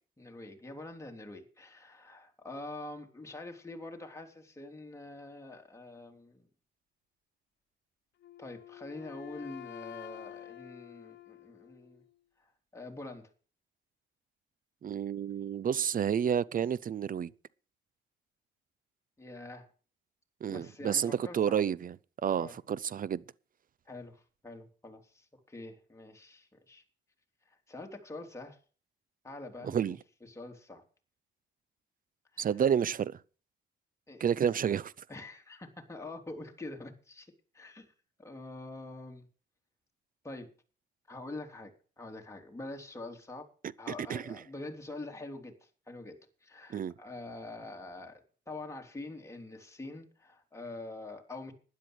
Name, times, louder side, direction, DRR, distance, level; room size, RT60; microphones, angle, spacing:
voice 1, 0.2-6.5 8.4-12.0 12.4-13.3 19.2-19.7 20.5-21.6 22.4-22.6 23.9-26.8 27.7-28.6 29.2-30.8 32.3-32.5 34.1-34.5 35.1-37.9 38.2-39.2 40.2-40.5 41.1-43.5 43.8-51.5, left 2 dB, 15° left, 3.1 m, -45 dB
Wind instrument woodwind instrument, 8.2-12.1, left 11 dB, 60° left, 0.8 m, -49 dB
voice 2, 14.8-17.3 20.4-22.0 22.2-23.2 29.6-30.0 32.4-33.1 34.2-34.9 44.1-44.4 46.7-46.9, right 8 dB, 45° right, 0.6 m, -30 dB
12.0 x 10.5 x 6.3 m
cardioid pair, 90°, 20 cm